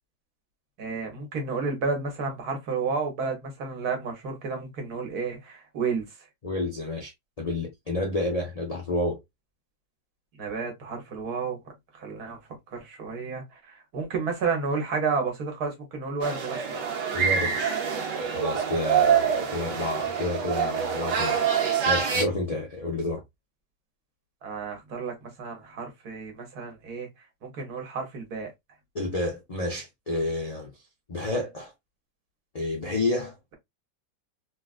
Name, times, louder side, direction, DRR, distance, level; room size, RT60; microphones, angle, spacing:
voice 1, 0.8-6.3 10.3-12.4 12.7-16.8 24.4-27.1 27.4-28.5, right 4 dB, 65° right, 1.6 m, -31 dB
voice 2, 6.4-7.1 7.4-9.2 17.1-17.6 18.3-23.2 28.9-30.7 31.1-31.7 32.5-33.3, left 2 dB, 45° left, 0.4 m, -30 dB
sound 1, 16.2-22.2, right 7 dB, 85° right, 1.4 m, -26 dB
3.8 x 2.4 x 2.4 m
omnidirectional pair, 1.8 m